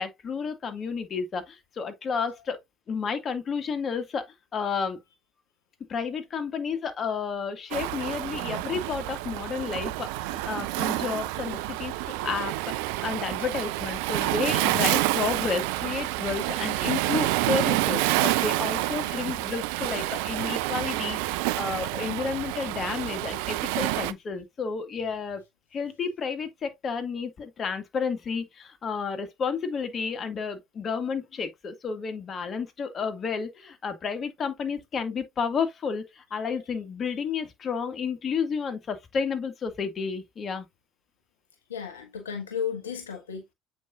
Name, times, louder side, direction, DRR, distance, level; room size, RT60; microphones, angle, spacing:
voice 1, 0.0-2.6 2.9-4.2 4.5-5.0 5.9-12.5 13.0-25.4 25.7-40.7, left 5 dB, 40° left, 2.1 m, -31 dB
Waves surf, 7.7-24.1, right 17 dB, 65° right, 0.5 m, -28 dB
voice 2, 41.7-43.5, left 7 dB, 80° left, 1.2 m, -34 dB
8.3 x 5.2 x 2.7 m
figure-of-eight pair, 60°, 0 cm